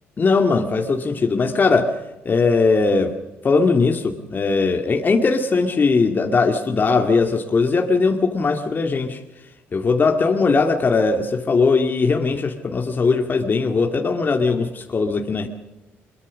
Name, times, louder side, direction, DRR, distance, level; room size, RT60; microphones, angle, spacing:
voice 1, 0.2-1.9 2.3-3.1 3.4-9.2 9.7-15.5, left 4 dB, 40° left, 3 dB, 2.3 m, -19 dB
22.5 x 22.5 x 6.4 m, 0.99 s
supercardioid pair, 70°, 5 cm